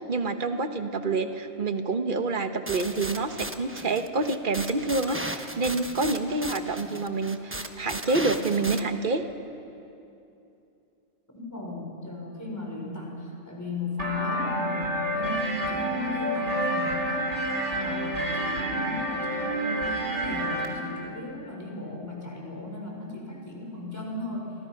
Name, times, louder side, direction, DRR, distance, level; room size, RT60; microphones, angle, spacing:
voice 1, 0.0-9.2, right 3 dB, 45° right, 7 dB, 1.4 m, -27 dB
sound 1, 2.7-8.8, right 1 dB, 10° right, 1.0 m, -36 dB
voice 2, 11.3-17.4 17.8-24.6, left 2 dB, 15° left, -1 dB, 5.0 m, -36 dB
sound 2, 14.0-20.7, right 1 dB, 65° right, 3.3 m, -29 dB
29.5 x 23.5 x 5.9 m, 2.8 s
omnidirectional pair, 1.3 m